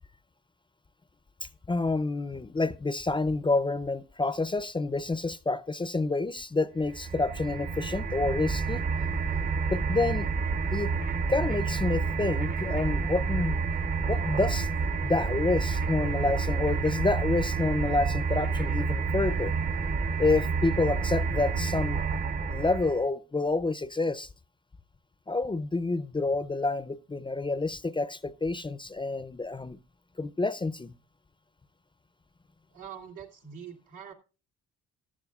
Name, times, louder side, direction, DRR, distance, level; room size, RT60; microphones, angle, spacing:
voice 1, 1.7-8.9 9.7-10.3 10.7-10.9 11.3-13.6 14.0-14.7 15.0-19.6 20.2-22.0 22.5-24.3 25.3-29.8 30.2-30.9, left 3 dB, 15° left, 0.5 m, -28 dB
sound 1, 6.8-23.0, right 5 dB, 30° right, 0.7 m, -29 dB
voice 2, 32.7-34.1, right 8 dB, 85° right, 2.4 m, -44 dB
15.0 x 11.5 x 2.3 m
cardioid pair, 90°, 30 cm